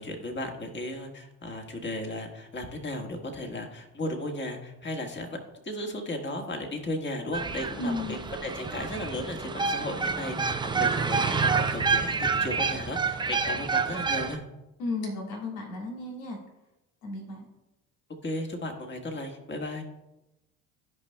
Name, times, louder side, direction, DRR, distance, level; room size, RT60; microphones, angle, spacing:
voice 1, 0.0-14.4 18.2-19.8, left 1 dB, 25° left, 2 dB, 1.5 m, -35 dB
sound 1, 7.3-14.4, right 5 dB, 10° right, 0.4 m, -28 dB
voice 2, 7.8-8.2 14.8-16.4 17.0-17.5, left 2 dB, 80° left, 0 dB, 1.9 m, -34 dB
14.5 x 5.3 x 2.2 m, 0.96 s
hypercardioid pair, 70°, 47 cm